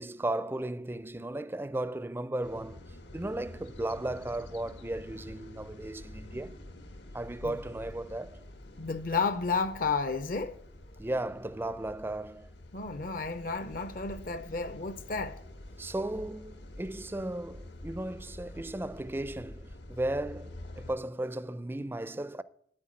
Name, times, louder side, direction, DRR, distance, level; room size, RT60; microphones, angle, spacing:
voice 1, 0.0-6.6 7.1-8.4 11.0-12.5 15.8-22.4, right 1 dB, 10° right, 0.4 m, -35 dB
sound 1, 2.4-20.9, left 1 dB, 80° left, 1.5 m, -47 dB
voice 2, 8.8-10.6 12.7-15.4, left 4 dB, 50° left, 0.6 m, -32 dB
9.6 x 9.4 x 8.6 m
head